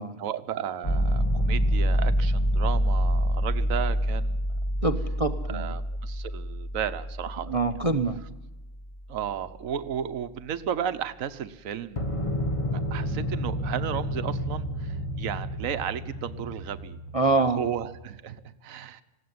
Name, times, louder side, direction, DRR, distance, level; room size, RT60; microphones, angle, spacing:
voice 1, 0.2-4.4 5.5-7.5 9.1-12.1 12.9-19.0, right 9 dB, 70° right, 11 dB, 1.3 m, -34 dB
sound 1, 0.8-8.7 12.0-18.0, equal, 25° left, 1.3 m, -28 dB
voice 2, 4.8-5.7 7.5-8.2 17.1-17.6, right 3 dB, 30° right, 9 dB, 0.9 m, -25 dB
20.0 x 16.0 x 9.5 m, 0.99 s
omnidirectional pair, 1.5 m